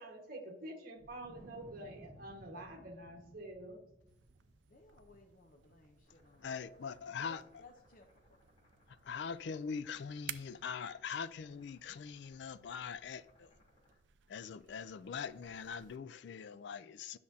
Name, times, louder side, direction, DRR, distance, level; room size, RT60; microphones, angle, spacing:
voice 1, 0.0-3.8, right 1 dB, 50° right, 1.6 m, -47 dB
Wind, 1.0-7.5, equal, 15° right, 1.1 m, -60 dB
sound 1, 4.1-16.0, right 12 dB, 75° right, 0.4 m, -56 dB
voice 2, 4.7-8.0 8.3-8.4, left 3 dB, 45° left, 0.7 m, -61 dB
sound 2, 6.0-13.9, left 1 dB, 30° left, 3.3 m, -69 dB
voice 3, 6.4-7.4 9.0-13.5 14.3-17.2, left 6 dB, 65° left, 0.3 m, -42 dB
10.5 x 6.4 x 2.8 m
head